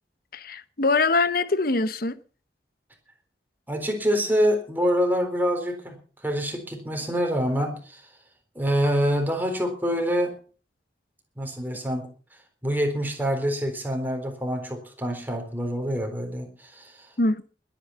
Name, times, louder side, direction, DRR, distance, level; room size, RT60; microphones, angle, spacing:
voice 1, 0.3-2.2 17.2-17.4, left 3 dB, 55° left, 0.9 m, -23 dB
voice 2, 3.7-6.0 6.2-8.1 8.6-10.3 11.4-12.1 12.6-17.1, equal, 10° right, 3.9 m, -26 dB
21.0 x 9.1 x 5.7 m
head